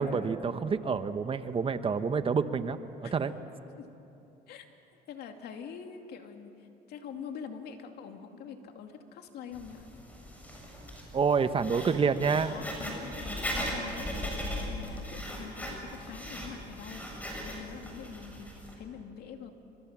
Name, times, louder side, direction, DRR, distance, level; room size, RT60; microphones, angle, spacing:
voice 1, 0.0-2.8 3.1-3.3 11.1-12.5, right 5 dB, 35° right, 11 dB, 1.1 m, -28 dB
voice 2, 5.1-9.9 12.3-14.2 14.7-17.0 17.4-19.5, left 7 dB, 70° left, 4 dB, 2.6 m, -44 dB
Writing, 9.5-18.7, equal, 10° left, 7.3 m, -38 dB
29.0 x 25.5 x 7.4 m, 3.0 s
cardioid pair, 110°, 17 cm